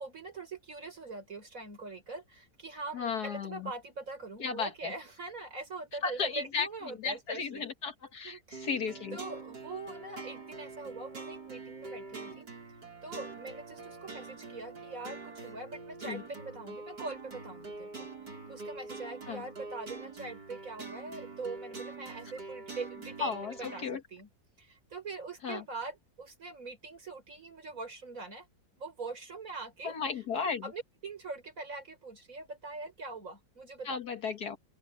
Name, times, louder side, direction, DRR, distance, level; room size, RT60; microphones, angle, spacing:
voice 1, 0.0-7.7 8.2-8.7 9.1-12.5 13.0-24.3 24.6-28.5 28.8-33.9, right 3 dB, 45° right, 5.1 m, -43 dB
voice 2, 2.9-3.7 4.4-4.9 6.0-9.2 16.0-16.2 19.3-19.4 23.2-24.0 25.4-25.6 29.8-30.6 33.9-34.6, left 5 dB, 60° left, 1.9 m, -35 dB
sound 1, 8.5-24.0, right 3 dB, 65° right, 6.8 m, -45 dB
open air
omnidirectional pair, 2.0 m